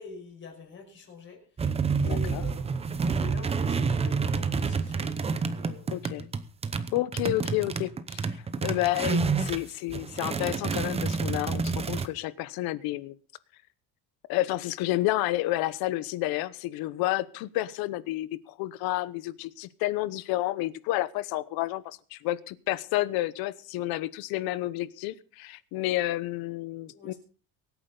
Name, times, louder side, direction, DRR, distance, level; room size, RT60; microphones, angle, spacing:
voice 1, 0.0-5.9 26.9-27.2, left 5 dB, 30° left, 2 dB, 5.8 m, -46 dB
sound 1, 1.6-9.6 9.9-12.1, right 5 dB, 15° right, 0.8 m, -29 dB
voice 2, 2.0-2.5 5.9-6.3 6.9-13.1 14.3-27.1, left 16 dB, 75° left, 17 dB, 1.0 m, -30 dB
23.5 x 9.4 x 3.9 m, 0.39 s
cardioid pair, 170°, 36 cm